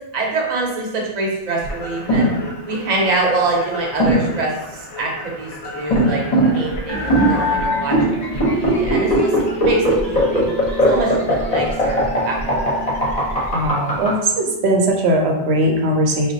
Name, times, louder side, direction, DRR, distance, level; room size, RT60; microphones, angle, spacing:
voice 1, 0.1-2.3 2.7-6.2 6.5-9.3 9.6-10.5 10.9-12.7, right 3 dB, 45° right, -2 dB, 0.7 m, -24 dB
sound 1, 1.6-14.1, right 1 dB, 45° left, 0.7 m, -19 dB
sound 2, 6.9-13.2, left 2 dB, 5° right, 0.6 m, -29 dB
voice 2, 13.5-16.3, right 1 dB, 90° right, 1 dB, 0.8 m, -19 dB
3.9 x 2.2 x 2.6 m, 0.91 s
omnidirectional pair, 1.1 m